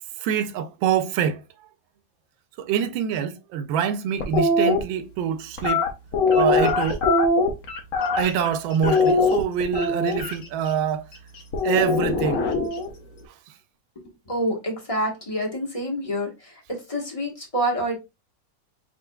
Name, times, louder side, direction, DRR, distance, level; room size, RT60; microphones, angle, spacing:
voice 1, 0.2-1.4 2.6-5.9 6.3-7.0 8.2-11.1 11.6-12.4, right 8 dB, 85° right, 1.3 m, -25 dB
sound 1, 4.2-4.8 5.6-8.5 8.8-10.3 11.5-12.9, left 3 dB, 55° left, 1.0 m, -21 dB
voice 2, 14.3-16.5 16.9-18.0, equal, 20° left, 1.0 m, -27 dB
5.0 x 3.7 x 2.2 m
omnidirectional pair, 2.1 m